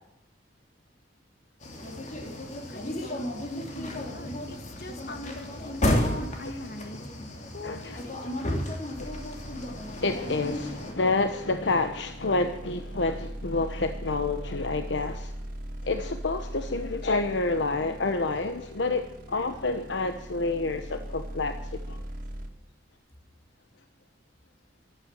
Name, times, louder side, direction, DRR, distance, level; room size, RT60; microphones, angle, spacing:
sound 1, 1.6-10.9, left 1 dB, 40° left, 3.0 m, -32 dB
voice 1, 2.7-7.0 7.5-8.3, left 1 dB, 60° left, 6 dB, 2.4 m, -42 dB
voice 2, 7.6-8.0 9.0-9.1 9.7-15.3 15.8-22.0, left 3 dB, 80° left, 8 dB, 1.0 m, -29 dB
sound 2, 9.0-22.5, right 1 dB, 50° right, 2.4 m, -40 dB
14.0 x 12.5 x 7.7 m, 0.80 s
head